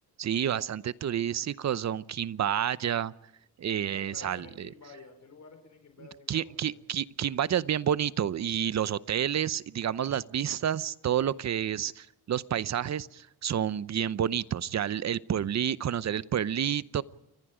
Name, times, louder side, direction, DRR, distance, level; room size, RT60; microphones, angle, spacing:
voice 1, 0.2-3.1 3.6-4.7 6.3-17.0, right 9 dB, 45° right, 17 dB, 0.8 m, -29 dB
voice 2, 3.9-6.8, left 4 dB, 45° left, 6 dB, 4.7 m, -51 dB
29.5 x 23.0 x 5.1 m, 0.82 s
cardioid pair, 95°, 39 cm